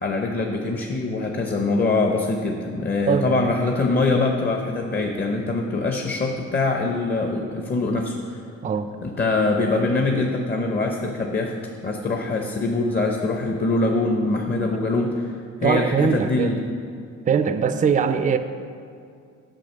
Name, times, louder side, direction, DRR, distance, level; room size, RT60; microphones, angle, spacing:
voice 1, 0.0-8.4 9.0-11.5 11.8-15.3 15.6-16.6, left 3 dB, 35° left, 2 dB, 0.8 m, -23 dB
voice 2, 15.6-16.5 17.3-18.4, right 6 dB, 25° right, 10 dB, 0.4 m, -21 dB
7.6 x 4.8 x 6.6 m, 2.4 s
cardioid pair, 90°, 30 cm